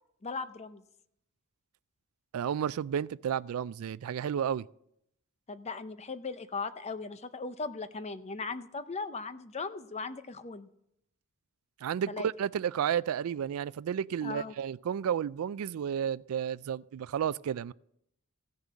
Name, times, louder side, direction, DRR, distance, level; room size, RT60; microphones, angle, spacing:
voice 1, 0.2-0.8 5.5-10.7 12.1-12.3 14.2-14.5, left 4 dB, 30° left, 0.6 m, -38 dB
voice 2, 2.3-4.7 11.8-17.7, right 8 dB, 75° right, 0.3 m, -32 dB
15.5 x 6.7 x 6.2 m
head